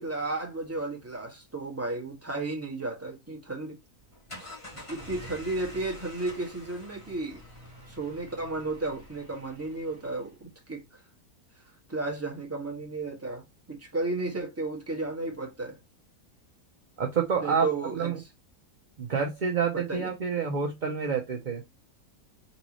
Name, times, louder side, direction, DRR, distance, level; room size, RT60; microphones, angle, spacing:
voice 1, 0.0-3.8 4.3-4.4 4.7-7.4 7.9-11.0 11.9-15.8 17.4-18.2 19.7-20.1, right 2 dB, 10° right, 1.5 m, -33 dB
sound 1, 4.0-10.4, left 1 dB, 20° left, 1.8 m, -47 dB
voice 2, 17.0-17.7 17.9-18.2 19.0-21.6, right 6 dB, 45° right, 0.7 m, -28 dB
4.2 x 3.7 x 3.0 m
omnidirectional pair, 1.6 m